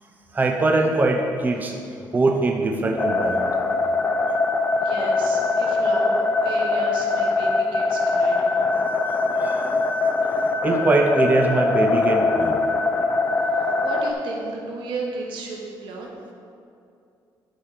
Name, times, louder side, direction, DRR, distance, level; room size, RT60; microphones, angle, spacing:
voice 1, 0.3-1.7 2.1-3.5 9.4-9.6 10.6-12.6, right 2 dB, 20° right, 2 dB, 0.6 m, -21 dB
sound 1, 3.0-14.1, left 3 dB, 25° left, 0.6 m, -22 dB
voice 2, 4.7-6.2 6.4-8.7 13.5-16.2, right 3 dB, 75° right, -1 dB, 1.2 m, -34 dB
10.5 x 4.8 x 5.0 m, 2.5 s
cardioid pair, 130°, 8 cm